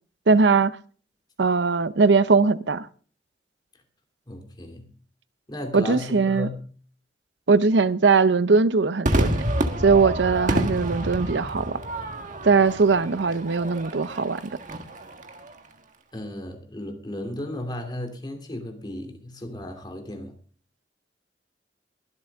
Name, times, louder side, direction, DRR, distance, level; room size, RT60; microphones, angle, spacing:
voice 1, 0.3-0.7 1.4-2.9 5.7-6.5 7.5-9.4 9.8-11.8 12.4-14.4, right 4 dB, 90° right, 0.7 m, -20 dB
voice 2, 4.3-4.9 5.5-6.7 16.1-20.4, left 1 dB, 25° left, 2.8 m, -35 dB
Crowd / Fireworks, 9.1-15.6, right 1 dB, 45° right, 1.5 m, -28 dB
22.5 x 7.9 x 3.6 m
head